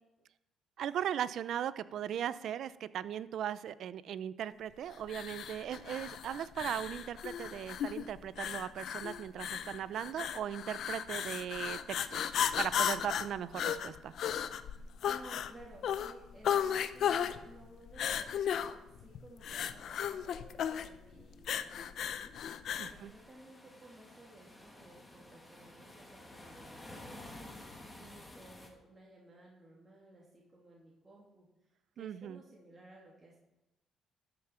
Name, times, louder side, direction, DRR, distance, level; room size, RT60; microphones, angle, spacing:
voice 1, 0.8-11.8 12.1-14.1 22.8-23.1 32.0-32.4, right 10 dB, 70° right, 16 dB, 0.4 m, -38 dB
sound 1, 5.1-23.0, left 9 dB, 70° left, 0.6 m, -35 dB
voice 2, 15.0-31.5 31.9-33.4, right 2 dB, 25° right, -4 dB, 2.5 m, -56 dB
sound 2, 22.7-28.7, left 1 dB, 15° left, 2.2 m, -52 dB
12.5 x 5.9 x 5.7 m, 0.95 s
cardioid pair, 90°, 0 cm